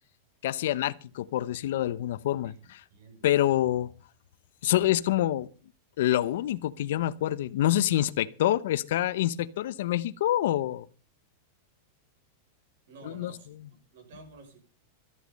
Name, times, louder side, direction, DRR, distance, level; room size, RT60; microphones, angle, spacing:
voice 1, 0.4-2.8 3.2-3.9 4.6-5.5 6.0-10.9 13.1-13.3, left 13 dB, 60° left, 0.9 m, -26 dB
voice 2, 2.4-3.3 12.9-14.6, right 4 dB, 60° right, 6.6 m, -51 dB
14.0 x 11.5 x 5.4 m
supercardioid pair, 175°, 0 cm